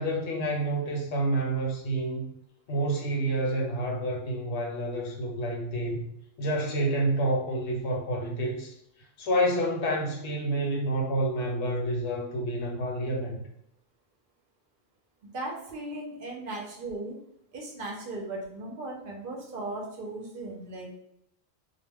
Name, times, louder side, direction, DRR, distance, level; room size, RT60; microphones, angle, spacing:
voice 1, 0.0-2.3 2.7-6.1 6.4-8.7 9.2-13.4, right 1 dB, 75° left, 0 dB, 1.0 m, -28 dB
voice 2, 15.3-17.2 17.5-20.9, right 2 dB, 60° right, -1 dB, 0.7 m, -37 dB
2.3 x 2.1 x 3.3 m, 0.78 s
omnidirectional pair, 1.1 m